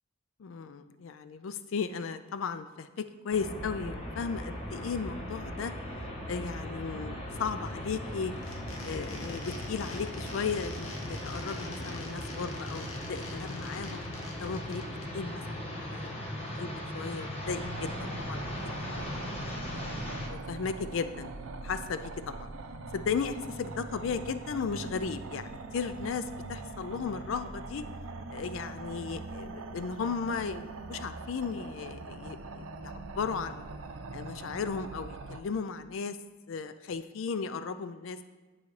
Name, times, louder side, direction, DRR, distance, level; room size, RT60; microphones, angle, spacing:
voice 1, 0.4-5.7 6.3-8.3 8.8-14.0 14.4-14.9 15.1-19.8 20.3-21.3 21.6-22.5 22.9-27.8 28.3-33.7 34.1-36.2 36.5-38.2, left 5 dB, 70° left, 11 dB, 0.4 m, -36 dB
sound 1, 3.3-20.3, left 1 dB, 30° left, 1.1 m, -38 dB
sound 2, 8.3-15.0, left 2 dB, 85° left, 1.1 m, -46 dB
sound 3, 17.4-35.4, right 3 dB, 80° right, 0.6 m, -42 dB
10.5 x 5.6 x 3.2 m, 1.3 s
head